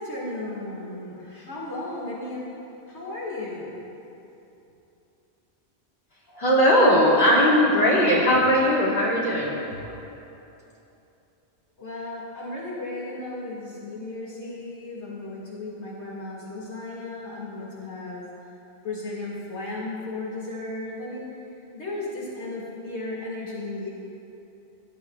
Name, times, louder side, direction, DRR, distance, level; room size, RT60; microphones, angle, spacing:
voice 1, 0.0-2.5 2.9-3.8 11.8-18.2 18.8-21.3 21.7-23.9, left 2 dB, 85° left, -6 dB, 2.4 m, -35 dB
voice 2, 6.3-9.5 9.9-10.0, equal, 60° left, -7 dB, 2.6 m, -19 dB
19.0 x 11.5 x 2.4 m, 2.9 s
omnidirectional pair, 1.1 m